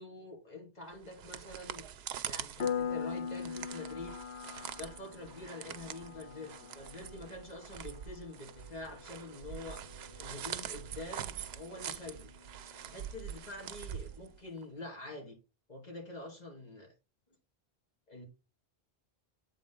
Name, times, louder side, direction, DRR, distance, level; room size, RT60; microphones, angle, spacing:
voice 1, 0.0-1.9 2.3-4.1 4.8-9.8 10.2-12.3 12.8-15.4 15.7-16.9 18.1-18.2, left 2 dB, 40° left, 2.5 m, -46 dB
sound 1, 0.9-14.6, right 9 dB, 85° right, 0.8 m, -44 dB
Piano, 2.6-13.0, left 6 dB, 90° left, 1.2 m, -43 dB
8.2 x 4.0 x 3.7 m
omnidirectional pair, 1.0 m